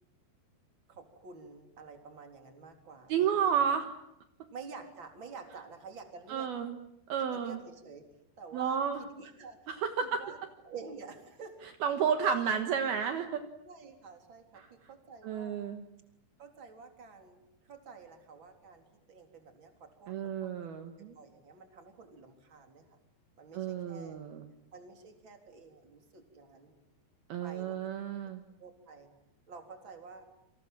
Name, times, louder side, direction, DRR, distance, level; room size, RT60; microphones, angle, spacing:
voice 1, 0.9-3.6 4.5-6.5 7.2-8.0 8.4-10.4 10.6-11.6 13.6-15.6 16.4-20.5 21.1-23.0 23.4-24.2 24.7-26.8 27.4-27.9 28.6-29.1 29.5-30.3, right 5 dB, 30° right, 4 dB, 4.0 m, -50 dB
voice 2, 3.1-3.9 6.3-6.8 7.1-7.6 8.5-9.1 9.7-10.2 11.8-13.4 14.6-14.7 15.2-15.8 20.1-21.2 23.5-24.5 27.3-28.4, right 7 dB, 65° right, 6 dB, 3.2 m, -31 dB
29.0 x 27.0 x 7.5 m, 0.82 s
omnidirectional pair, 5.0 m